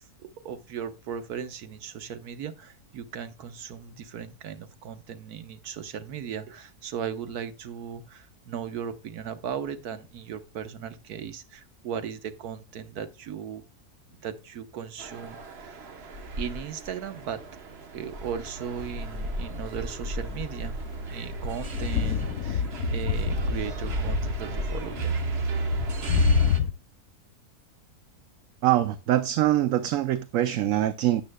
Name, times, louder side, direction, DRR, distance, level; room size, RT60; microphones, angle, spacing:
voice 1, 0.0-13.6 14.1-16.1 16.4-17.4 17.9-20.7 21.1-22.6 22.9-25.2, right 8 dB, 85° right, 1.5 m, -37 dB
sound 1, 15.0-26.6, right 3 dB, 45° right, 1.2 m, -33 dB
sound 2, 18.9-19.4 20.3-26.7, left 9 dB, 75° left, 1.1 m, -29 dB
voice 2, 28.6-31.2, right 13 dB, 70° right, 0.9 m, -24 dB
13.0 x 8.6 x 2.2 m
omnidirectional pair, 1.6 m